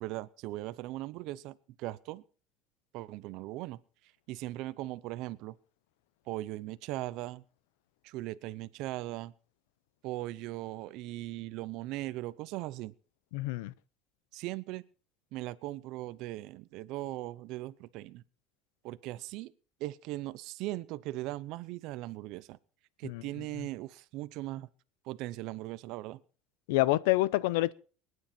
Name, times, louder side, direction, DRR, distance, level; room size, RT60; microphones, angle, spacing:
voice 1, 0.0-2.2 2.9-3.8 4.3-5.6 6.3-7.4 8.0-9.3 10.0-12.9 14.3-14.8 15.3-18.2 18.8-19.5 19.8-22.6 23.0-24.7 25.0-26.2, right 17 dB, 50° right, 0.7 m, -39 dB
voice 2, 13.3-13.7 23.0-23.2 26.7-27.7, left 18 dB, 85° left, 0.6 m, -27 dB
25.0 x 9.7 x 4.4 m
cardioid pair, 170°, 0 cm